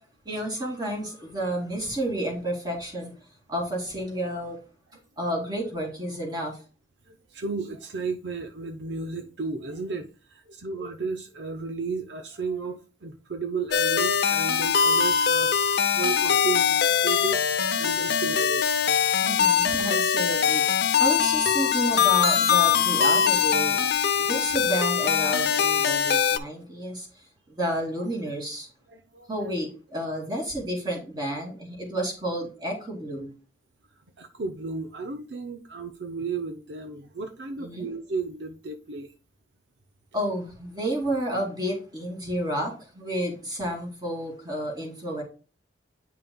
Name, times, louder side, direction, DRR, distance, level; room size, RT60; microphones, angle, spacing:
voice 1, 0.2-3.1 3.5-4.6 5.2-6.6 19.2-23.8 24.2-27.1 27.5-28.7 29.3-33.3 37.6-37.9 40.1-45.2, right 1 dB, 20° right, 2.8 m, -31 dB
voice 2, 7.1-17.5 17.8-18.7 28.9-29.3 34.2-39.1, right 4 dB, 70° right, 0.7 m, -34 dB
sound 1, 13.7-26.4, left 7 dB, 60° left, 0.6 m, -22 dB
9.5 x 5.6 x 2.3 m
head